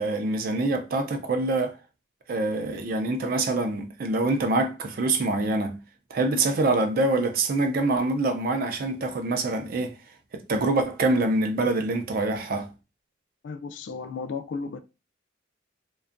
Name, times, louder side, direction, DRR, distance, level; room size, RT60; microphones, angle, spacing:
voice 1, 0.0-1.8 2.3-5.8 6.1-10.0 10.3-12.7, right 2 dB, 50° right, 0.4 m, -25 dB
voice 2, 13.4-14.8, left 4 dB, 65° left, 0.3 m, -34 dB
2.6 x 2.2 x 2.5 m
head